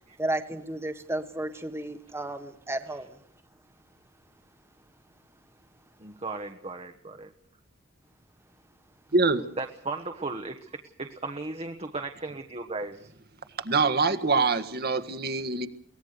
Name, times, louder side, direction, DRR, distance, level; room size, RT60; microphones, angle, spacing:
voice 1, 0.2-3.2, right 1 dB, 15° right, 8 dB, 1.5 m, -33 dB
voice 2, 6.0-7.3 9.6-13.1, right 3 dB, 30° right, 4 dB, 1.3 m, -36 dB
voice 3, 9.1-9.4 13.6-15.7, right 4 dB, 55° right, 8 dB, 1.8 m, -24 dB
23.0 x 19.0 x 6.7 m, 0.68 s
head